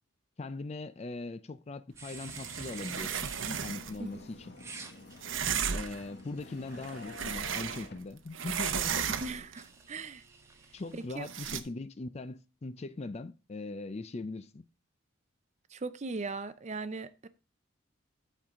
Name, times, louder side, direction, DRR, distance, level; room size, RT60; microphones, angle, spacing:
voice 1, 0.4-4.5 5.7-9.0 10.7-14.6, left 3 dB, 30° left, 0.4 m, -40 dB
sound 1, 2.0-3.6 4.6-7.0 8.5-11.1, right 4 dB, 15° right, 0.9 m, -51 dB
sound 2, 2.1-4.0 5.2-6.1 6.7-8.1 8.3-9.5 11.2-11.6, right 7 dB, 65° right, 0.7 m, -35 dB
sound 3, 2.3-7.9, left 2 dB, 55° left, 1.6 m, -51 dB
voice 2, 9.2-10.2 10.9-11.3 15.7-17.3, right 3 dB, 35° right, 0.5 m, -39 dB
13.5 x 4.5 x 3.6 m
head